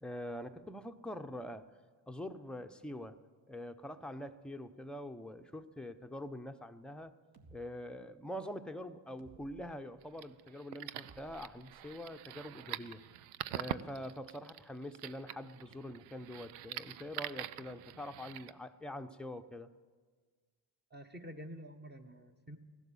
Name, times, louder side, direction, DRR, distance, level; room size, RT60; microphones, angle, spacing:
voice 1, 0.0-1.7 2.1-3.2 3.5-7.1 7.5-13.0 13.5-19.7, left 1 dB, ahead, 7 dB, 0.8 m, -44 dB
sound 1, 7.3-7.6 9.2-9.7 11.0-12.2, right 3 dB, 45° right, 2.0 m, -59 dB
sound 2, 10.0-18.5, right 13 dB, 80° right, 0.6 m, -45 dB
voice 2, 20.9-22.6, equal, 20° right, 8 dB, 1.3 m, -48 dB
16.5 x 12.0 x 7.2 m, 1.5 s
hypercardioid pair, 45°, 49 cm